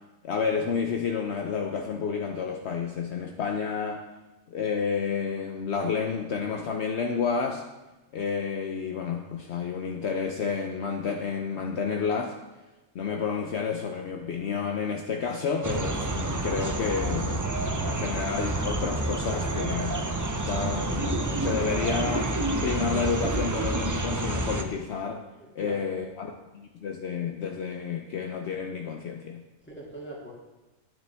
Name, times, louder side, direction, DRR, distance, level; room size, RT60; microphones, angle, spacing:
voice 1, 0.2-4.0 4.5-7.6 8.1-12.3 12.9-17.5 17.9-20.1 20.4-22.3 22.6-25.2 25.5-29.4, left 6 dB, 65° left, 2 dB, 0.9 m, -30 dB
sound 1, 15.6-24.6, right 2 dB, 25° right, 0.4 m, -29 dB
voice 2, 25.4-26.0 29.6-30.3, right 1 dB, 10° left, -4 dB, 2.1 m, -42 dB
9.6 x 9.2 x 3.4 m, 1.1 s
omnidirectional pair, 1.3 m